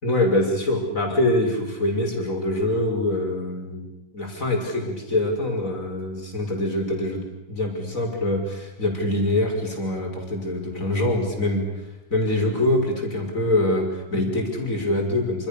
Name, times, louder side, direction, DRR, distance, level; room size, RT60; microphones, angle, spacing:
voice 1, 0.0-3.8 4.1-7.2 7.5-11.7 12.1-15.5, left 1 dB, 45° left, 2 dB, 6.2 m, -24 dB
28.0 x 27.5 x 6.9 m, 1.0 s
omnidirectional pair, 2.0 m